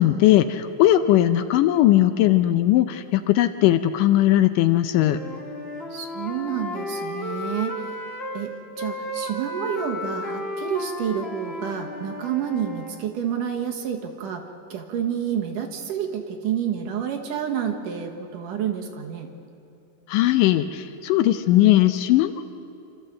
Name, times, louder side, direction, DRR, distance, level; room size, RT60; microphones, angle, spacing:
voice 1, 0.0-5.2 20.1-22.4, left 13 dB, 80° left, 10 dB, 2.1 m, -19 dB
Wind instrument woodwind instrument, 4.9-8.4 8.8-13.0, left 1 dB, 40° left, 0.8 m, -33 dB
voice 2, 5.9-7.8 8.3-19.3, right 8 dB, 70° right, 2 dB, 2.9 m, -29 dB
28.5 x 13.5 x 7.8 m, 2.8 s
omnidirectional pair, 4.1 m